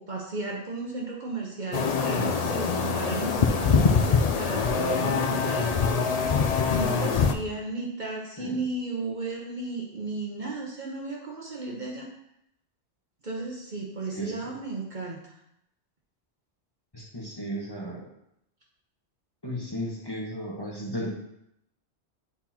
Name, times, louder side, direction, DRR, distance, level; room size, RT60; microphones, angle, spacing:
voice 1, 0.0-6.1 6.4-12.1 13.2-15.4, right 3 dB, 45° right, -2 dB, 1.0 m, -34 dB
sound 1, 1.7-7.3, left 5 dB, 50° left, 0.4 m, -24 dB
voice 2, 16.9-18.0 19.4-21.1, equal, 20° left, -4 dB, 1.3 m, -34 dB
9.7 x 4.2 x 2.9 m, 0.78 s
omnidirectional pair, 1.2 m